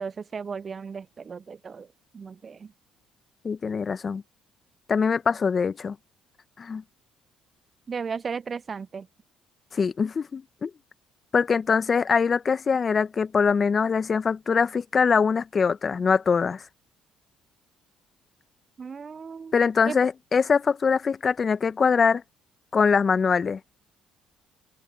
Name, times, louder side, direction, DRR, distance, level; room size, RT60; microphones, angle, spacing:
voice 1, 0.0-1.9 2.1-2.7 7.9-9.1 18.8-19.5 19.9-20.0, right 5 dB, 40° right, 0.5 m, -35 dB
voice 2, 3.4-4.2 4.9-5.9 6.6-6.8 9.7-10.7 11.3-16.6 19.5-22.2 22.7-23.6, left 5 dB, 40° left, 1.2 m, -23 dB
hypercardioid pair, 60°, 0 cm